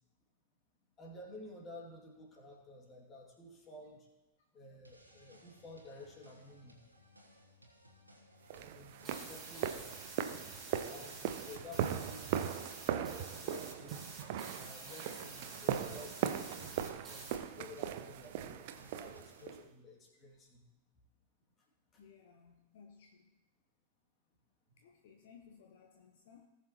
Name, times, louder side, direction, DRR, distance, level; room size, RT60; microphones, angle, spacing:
voice 1, 1.0-4.1 4.5-6.8 8.5-10.0 10.9-12.4 12.8-14.1 14.5-20.6 21.6-21.7 21.9-22.0, left 2 dB, 25° left, -1 dB, 2.4 m, -53 dB
sound 1, 4.8-19.6, equal, 85° right, 1.3 m, -62 dB
sound 2, 8.5-19.6, right 10 dB, 50° right, 0.6 m, -39 dB
sound 3, 9.0-17.4, right 3 dB, 25° right, 3.4 m, -50 dB
voice 2, 22.0-23.3 24.8-26.5, left 6 dB, 55° left, 3 dB, 0.9 m, -60 dB
18.5 x 6.1 x 3.0 m, 1.0 s
figure-of-eight pair, 90°, 0 cm